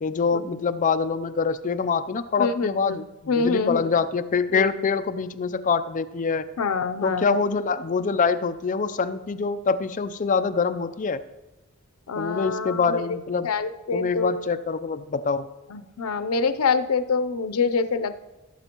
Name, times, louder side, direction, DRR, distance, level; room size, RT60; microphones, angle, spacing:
voice 1, 0.0-6.5 7.0-11.2 12.2-13.5 13.9-15.5, left 5 dB, 35° left, 11 dB, 0.4 m, -25 dB
voice 2, 2.4-3.0 3.3-4.0 4.5-4.7 6.6-7.4 12.1-13.2 13.4-14.4 15.7-18.2, left 4 dB, 90° left, 10 dB, 0.6 m, -26 dB
16.5 x 7.8 x 3.0 m, 1.0 s
head